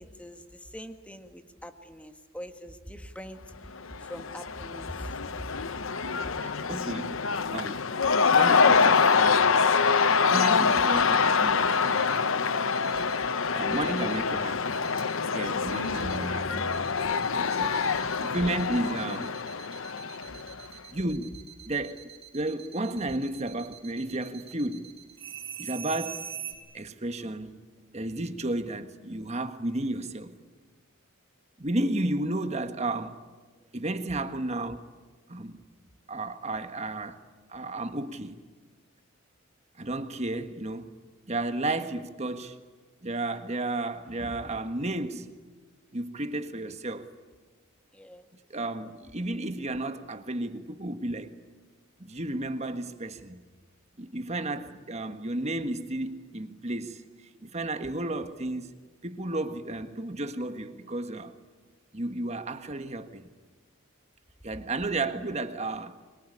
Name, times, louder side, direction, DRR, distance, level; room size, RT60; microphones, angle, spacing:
voice 1, 0.0-3.6 4.0-5.7 6.2-6.3 15.9-16.2 16.5-16.6 47.9-48.2, equal, 5° left, 1.6 m, -43 dB
Cheering / Crowd, 3.8-20.6, left 5 dB, 65° left, 0.9 m, -25 dB
voice 2, 6.4-7.2 7.5-7.8 8.3-9.6 10.2-12.2 13.5-14.8 15.3-16.7 17.5-19.4 20.9-21.4 21.7-22.0 22.3-24.9 25.6-26.2 26.7-27.6 27.9-30.4 31.6-33.2 33.7-34.9 35.3-35.6 36.1-37.2 37.5-38.4 39.8-40.9 41.3-42.6 43.0-45.3 45.9-47.1 48.5-51.4 52.0-53.4 54.0-57.0 57.4-58.7 59.0-61.3 61.9-63.3 64.4-65.9, right 2 dB, 30° right, 1.5 m, -33 dB
sound 1, 8.7-9.2 9.7-10.2 10.7-11.2 11.7-12.2 12.7-13.2 13.7-14.2 14.7-15.2 15.7-16.2 16.7-26.5, right 10 dB, 60° right, 5.8 m, -44 dB
25.5 x 23.0 x 9.9 m
head